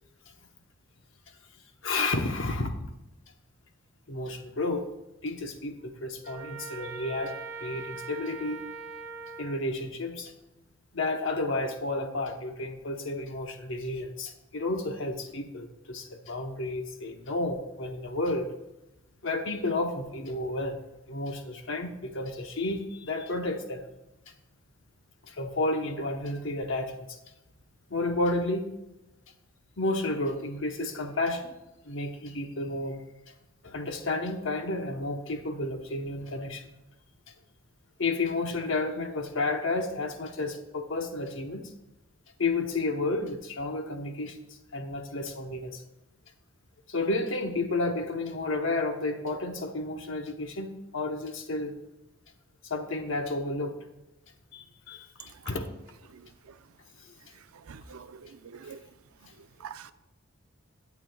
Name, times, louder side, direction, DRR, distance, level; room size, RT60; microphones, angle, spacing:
voice 1, 1.8-2.9 4.1-4.9 5.2-8.6 9.4-10.3 10.9-18.5 19.2-20.8 21.1-23.8 25.2-27.2 27.9-28.7 29.8-31.5 31.8-33.0 33.6-36.7 38.0-41.7 42.4-44.4 44.7-45.8 46.9-51.8 52.6-53.8 54.5-55.7, left 2 dB, 65° left, 1.0 m, -31 dB
Trumpet, 6.2-9.6, right 5 dB, 15° right, 0.8 m, -41 dB
voice 2, 57.7-58.8 59.6-59.9, right 6 dB, 90° right, 0.5 m, -45 dB
12.0 x 8.1 x 2.3 m
head